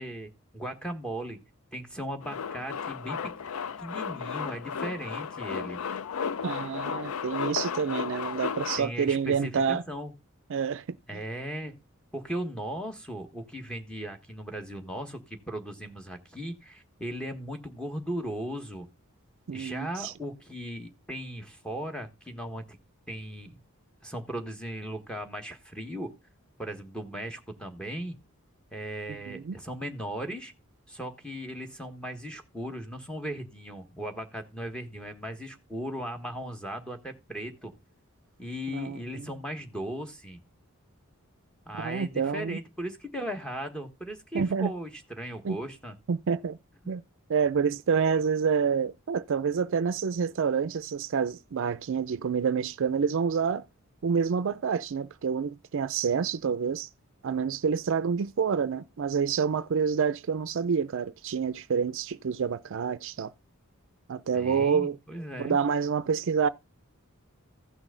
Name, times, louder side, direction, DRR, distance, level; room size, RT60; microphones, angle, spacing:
voice 1, 0.0-1.4 1.7-3.3 3.8-5.8 8.8-10.1 11.1-11.8 12.1-18.9 19.5-22.8 23.1-23.6 24.0-26.1 26.6-28.2 28.7-30.5 30.9-37.7 38.4-40.4 41.7-45.9 64.3-65.6, equal, 5° left, 1.4 m, -37 dB
Male speech man speaking, 2.2-8.8, left 6 dB, 75° left, 0.5 m, -34 dB
voice 2, 6.4-9.8 10.5-10.8 11.1-11.2 19.5-20.1 29.3-29.6 38.7-39.0 41.8-42.6 44.3-44.7 45.4-45.6 46.1-46.6 46.9-47.0 47.3-53.7 54.0-56.9 57.2-63.3 64.1-65.0 65.4-66.5, right 6 dB, 60° right, 0.4 m, -28 dB
15.0 x 6.1 x 3.8 m
head